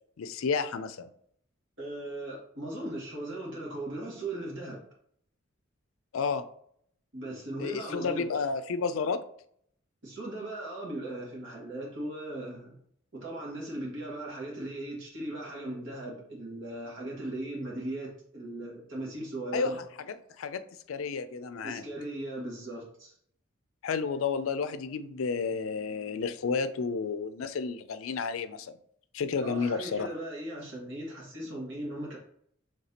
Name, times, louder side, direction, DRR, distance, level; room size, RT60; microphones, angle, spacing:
voice 1, 0.2-1.1 6.1-6.4 7.6-9.2 19.5-20.6 20.9-21.8 23.8-28.7 29.1-30.1, left 5 dB, 85° left, 0.4 m, -31 dB
voice 2, 1.8-4.8 7.1-8.3 10.0-12.8 13.1-19.8 21.6-23.1 29.4-32.2, right 1 dB, 65° right, 1.8 m, -38 dB
5.7 x 3.3 x 2.8 m
head